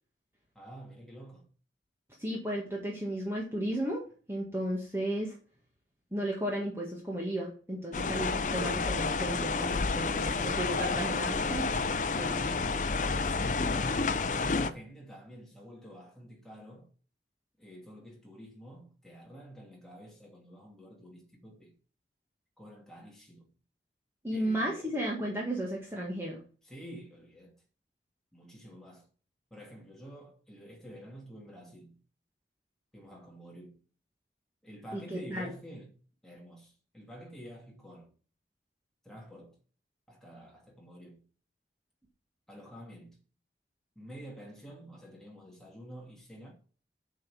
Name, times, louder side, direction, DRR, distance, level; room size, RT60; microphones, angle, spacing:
voice 1, 0.5-1.5 13.2-16.9 17.6-21.7 22.6-23.5 24.3-24.9 26.6-27.6 28.3-29.1 29.5-32.0 32.9-33.8 34.6-38.1 39.0-39.6 40.1-41.2 42.5-43.2 44.0-46.5, equal, 5° left, 2.4 m, -49 dB
voice 2, 2.2-4.0 4.3-5.3 6.1-11.7 12.1-12.6 24.2-26.4 34.9-35.5, right 1 dB, 15° right, 1.8 m, -34 dB
sound 1, 7.9-14.7, left 4 dB, 45° left, 0.6 m, -30 dB
7.6 x 5.6 x 7.0 m
head